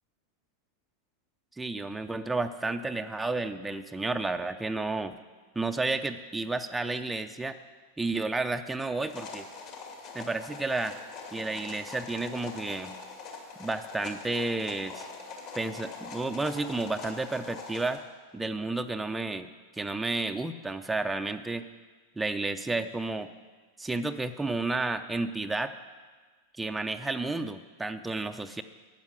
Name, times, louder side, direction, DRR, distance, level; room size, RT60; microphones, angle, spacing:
voice 1, 1.6-5.2 5.6-7.6 8.0-9.5 10.1-11.0 11.3-13.0 13.6-15.1 15.5-18.0 18.3-21.7 22.2-23.3 23.8-25.7 26.5-28.6, right 2 dB, 5° right, 6 dB, 0.5 m, -31 dB
sound 1, 9.0-18.0, left 4 dB, 45° left, 2.3 m, -43 dB
12.5 x 8.9 x 6.3 m, 1.4 s
figure-of-eight pair, 90°, 0 cm